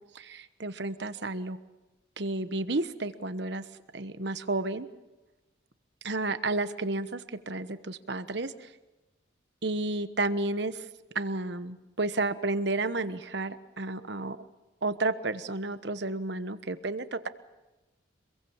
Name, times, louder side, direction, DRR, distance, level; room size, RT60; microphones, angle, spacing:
voice 1, 0.1-1.6 2.2-3.6 3.9-4.9 6.0-8.7 9.6-10.9 11.1-14.4 14.8-17.3, right 2 dB, 60° right, 12 dB, 1.2 m, -31 dB
26.0 x 22.0 x 7.2 m, 1.1 s
head